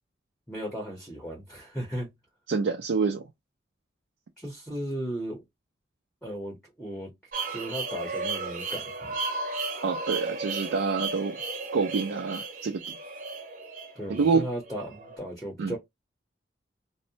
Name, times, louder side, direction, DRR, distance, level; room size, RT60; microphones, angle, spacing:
voice 1, 0.5-2.1 4.4-5.4 6.2-7.1 7.5-9.1 14.0-15.8, equal, 5° left, 0.7 m, -36 dB
voice 2, 2.5-3.3 9.8-11.4 11.7-12.8 14.1-14.5 15.6-15.8, right 4 dB, 85° right, 0.4 m, -27 dB
sound 1, 7.3-15.2, right 3 dB, 45° right, 0.7 m, -34 dB
2.6 x 2.1 x 2.7 m
head